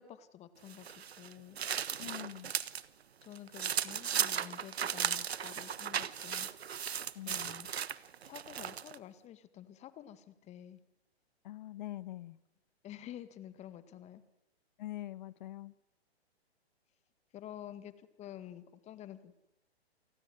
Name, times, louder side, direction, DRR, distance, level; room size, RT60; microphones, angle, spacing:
voice 1, 0.0-1.6 3.2-6.5 7.3-7.7 8.2-10.8 12.8-14.2 17.3-19.3, left 11 dB, 20° left, 13 dB, 2.0 m, -50 dB
sound 1, 0.7-2.8 3.2-9.0, right 8 dB, 70° right, 1.3 m, -36 dB
voice 2, 2.0-2.5 7.1-7.4 11.4-12.4 14.8-15.7, left 14 dB, 45° left, 19 dB, 1.4 m, -44 dB
29.0 x 19.5 x 9.4 m, 0.88 s
hypercardioid pair, 130°, 33 cm